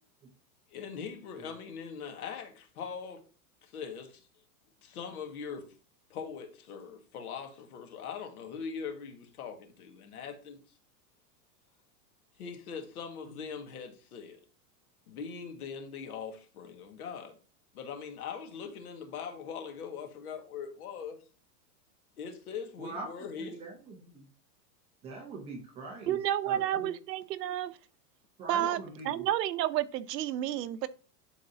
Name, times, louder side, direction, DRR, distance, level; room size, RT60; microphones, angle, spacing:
voice 1, 0.7-3.3 3.6-4.3 4.8-5.8 6.1-10.8 12.4-14.4 15.1-17.4 17.7-21.2 22.2-23.6 28.6-28.8, left 6 dB, 60° left, 2.0 m, -41 dB
voice 2, 22.8-23.1 23.4-24.3 25.0-26.2 26.4-26.9 28.4-29.2, right 3 dB, 10° right, 0.7 m, -42 dB
voice 3, 26.1-27.7 28.5-28.8 29.0-30.9, right 12 dB, 80° right, 0.8 m, -30 dB
11.5 x 4.0 x 2.8 m
supercardioid pair, 175°, 49 cm